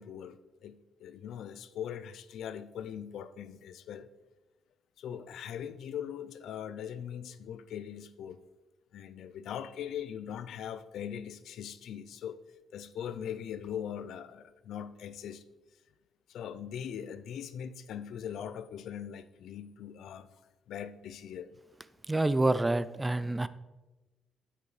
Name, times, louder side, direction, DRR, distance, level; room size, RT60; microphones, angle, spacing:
voice 1, 0.0-4.1 5.0-8.4 8.9-12.4 12.7-15.4 16.3-20.3 20.7-21.5, left 9 dB, 75° left, 13 dB, 0.5 m, -41 dB
voice 2, 22.1-23.5, right 2 dB, 15° right, 15 dB, 0.4 m, -27 dB
9.5 x 8.3 x 3.2 m, 1.1 s
cardioid pair, 90°, 0 cm